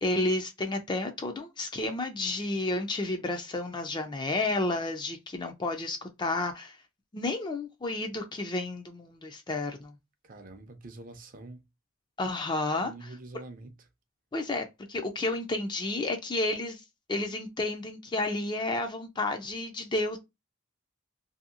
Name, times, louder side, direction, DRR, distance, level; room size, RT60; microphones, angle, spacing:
voice 1, 0.0-6.8 7.1-9.9 12.2-12.9 14.3-16.8 17.1-20.2, left 2 dB, 20° left, 0.4 m, -31 dB
voice 2, 10.2-11.6 12.8-13.7, right 2 dB, 40° right, 0.5 m, -45 dB
2.7 x 2.7 x 2.5 m
head